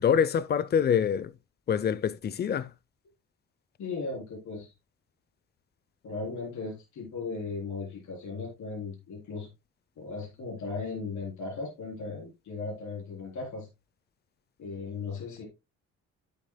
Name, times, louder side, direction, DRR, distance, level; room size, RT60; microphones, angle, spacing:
voice 1, 0.0-1.3 1.7-2.7, left 8 dB, 35° left, 0.5 m, -25 dB
voice 2, 3.8-4.7 6.0-9.5 10.0-13.7 14.6-15.4, left 4 dB, 70° left, 3.6 m, -37 dB
8.9 x 8.6 x 2.2 m
cardioid pair, 90°, 30 cm